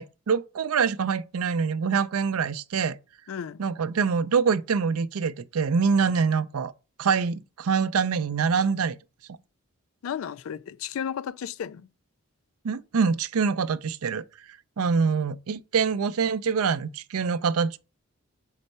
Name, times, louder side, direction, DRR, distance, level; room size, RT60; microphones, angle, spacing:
voice 1, 0.0-3.0 3.6-6.7 7.0-9.0 12.6-14.2 14.8-17.8, right 5 dB, 80° right, 0.5 m, -25 dB
voice 2, 3.3-3.6 10.0-11.9, left 8 dB, 70° left, 0.3 m, -33 dB
4.4 x 4.1 x 5.3 m
head